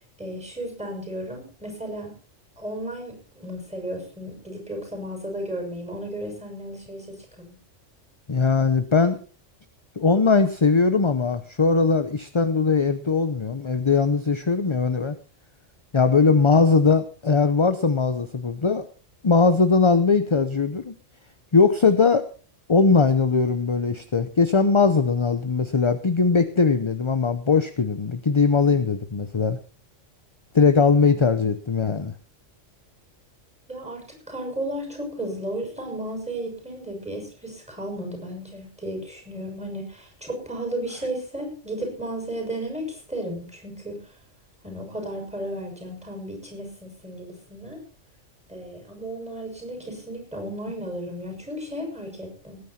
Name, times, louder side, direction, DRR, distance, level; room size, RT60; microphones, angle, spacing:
voice 1, 0.2-2.2 2.6-7.6 33.7-44.0 44.6-47.8 48.5-52.6, right 1 dB, 5° right, 2 dB, 6.0 m, -34 dB
voice 2, 8.3-9.2 10.0-15.2 15.9-18.8 19.2-20.9 21.5-22.2 22.7-29.6 30.5-32.1, left 4 dB, 30° left, 10 dB, 0.7 m, -20 dB
19.0 x 9.6 x 4.3 m, 0.39 s
omnidirectional pair, 1.3 m